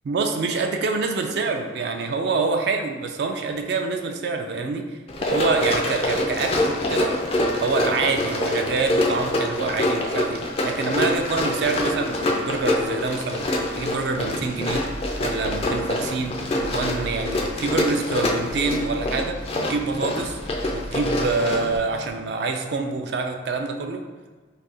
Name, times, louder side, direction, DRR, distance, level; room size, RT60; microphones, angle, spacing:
voice 1, 0.0-4.8 5.3-7.1 7.6-13.5 13.8-14.8 15.2-20.4 20.7-24.0, right 4 dB, 55° right, 4 dB, 0.3 m, -26 dB
Run, 5.1-21.8, left 1 dB, 30° left, 0.3 m, -25 dB
sound 1, 14.1-22.2, equal, 90° left, 0.7 m, -38 dB
2.6 x 2.4 x 4.1 m, 1.4 s
head